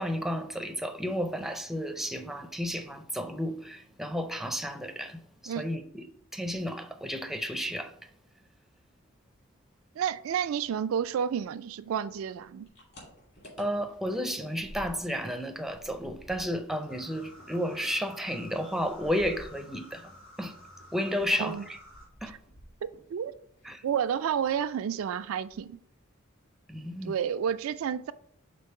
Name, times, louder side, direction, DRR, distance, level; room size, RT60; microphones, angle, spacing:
voice 1, 0.0-6.1 6.3-7.9 13.6-20.1 20.4-20.6 20.9-21.8 22.2-22.4 23.6-23.8 26.7-27.1, equal, ahead, 0.4 m, -32 dB
voice 2, 10.0-12.7 21.4-21.6 22.3-22.4 23.1-23.3 23.8-25.8 27.0-28.1, right 8 dB, 80° right, 0.3 m, -30 dB
sound 1, 12.3-15.3 15.6-20.1 20.4-23.1 23.4-24.1 24.4-24.7 25.0-25.1 25.4-25.9, equal, 55° left, 2.6 m, -51 dB
sound 2, 16.9-22.1, left 1 dB, 75° left, 1.2 m, -52 dB
5.3 x 3.8 x 5.5 m
head